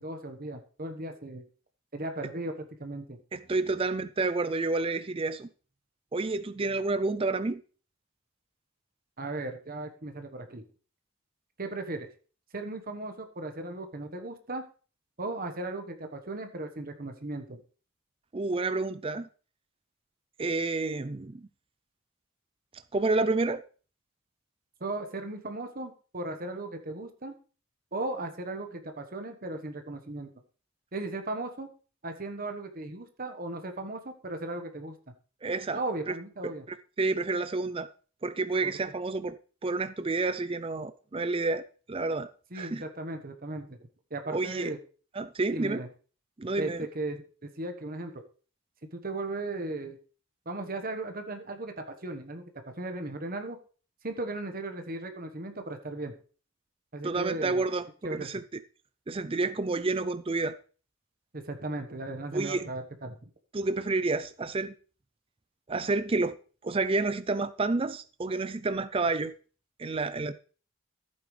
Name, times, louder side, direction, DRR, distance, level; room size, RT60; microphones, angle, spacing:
voice 1, 0.0-1.4 1.9-3.2 9.2-10.6 11.6-12.1 12.5-14.6 15.2-17.6 24.8-27.3 27.9-30.3 30.9-31.7 32.0-35.0 35.7-36.6 38.6-38.7 42.5-43.8 44.1-44.8 45.5-45.9 46.6-48.1 48.9-50.0 50.4-53.6 54.0-56.1 56.9-57.6 58.0-58.3 61.3-63.2, right 2 dB, 40° right, 1.3 m, -36 dB
voice 2, 3.3-5.5 6.1-7.6 18.3-19.3 20.4-21.5 22.9-23.6 35.4-35.8 36.1-36.2 36.4-37.9 38.2-39.4 39.6-42.8 44.3-44.7 45.1-45.8 46.4-46.9 57.0-57.8 58.1-58.4 59.1-60.6 62.3-62.6 63.5-64.7 65.7-66.4 66.6-69.3 69.8-70.3, right 3 dB, 25° right, 0.4 m, -29 dB
14.5 x 8.6 x 3.3 m
head